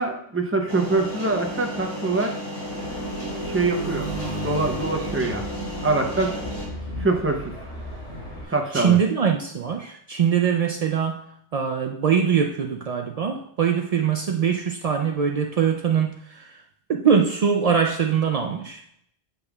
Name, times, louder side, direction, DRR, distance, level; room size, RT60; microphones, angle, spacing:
voice 1, 0.0-2.4 3.4-4.1 4.4-5.5 5.8-6.4 7.0-7.6 8.5-9.0, right 3 dB, 15° right, 3 dB, 0.5 m, -24 dB
sound 1, 0.7-6.7, left 1 dB, 25° left, 1.9 m, -33 dB
sound 2, 2.6-8.4, right 2 dB, 85° left, 2.7 m, -34 dB
voice 2, 8.7-11.2 11.5-16.6 16.9-18.8, right 7 dB, 75° right, 3 dB, 0.3 m, -22 dB
8.3 x 5.3 x 2.3 m, 0.69 s
omnidirectional pair, 1.2 m